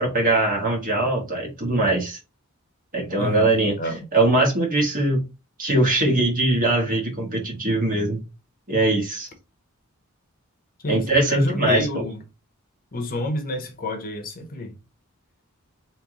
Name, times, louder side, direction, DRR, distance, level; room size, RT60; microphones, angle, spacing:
voice 1, 0.0-2.2 2.9-3.7 4.1-5.2 5.6-8.2 8.7-9.3 10.9-11.9, right 2 dB, 40° right, 1.4 m, -21 dB
voice 2, 3.2-3.5 3.8-4.1 10.8-12.2 12.9-14.7, left 1 dB, 40° left, 0.9 m, -29 dB
3.1 x 3.1 x 3.7 m
head